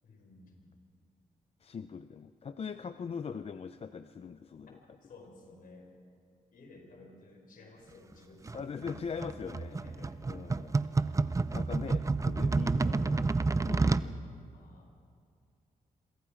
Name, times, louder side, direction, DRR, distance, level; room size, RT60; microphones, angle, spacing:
voice 1, 0.0-0.8 4.6-4.7 5.0-5.9 6.5-9.1 9.8-10.2 14.5-14.9, left 2 dB, 70° left, 2 dB, 5.0 m, -55 dB
voice 2, 1.6-4.8 8.5-9.8 10.3-11.2 11.5-13.3 13.7-14.2, left 6 dB, 40° left, 10 dB, 0.5 m, -41 dB
sound 1, 8.5-14.1, right 3 dB, 20° right, 0.6 m, -29 dB
27.0 x 23.5 x 5.0 m, 2.3 s
cardioid pair, 110°, 15 cm